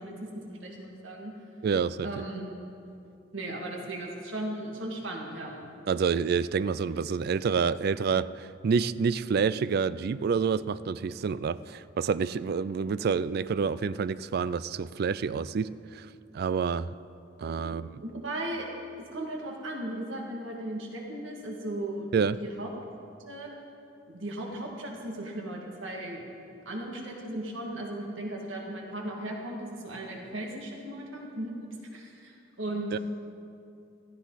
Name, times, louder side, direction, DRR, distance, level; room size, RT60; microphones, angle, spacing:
voice 1, 0.0-1.3 2.0-2.4 3.3-5.5 17.6-18.7 19.1-22.1 22.4-22.7 23.3-23.5 24.1-26.2 26.7-33.0, right 1 dB, 85° right, 0 dB, 2.1 m, -37 dB
voice 2, 1.6-2.1 5.9-15.7 16.3-16.9 17.4-17.9 22.1-22.4 32.9-33.0, right 5 dB, 55° right, 17 dB, 0.3 m, -28 dB
16.0 x 14.5 x 4.1 m, 2.6 s
head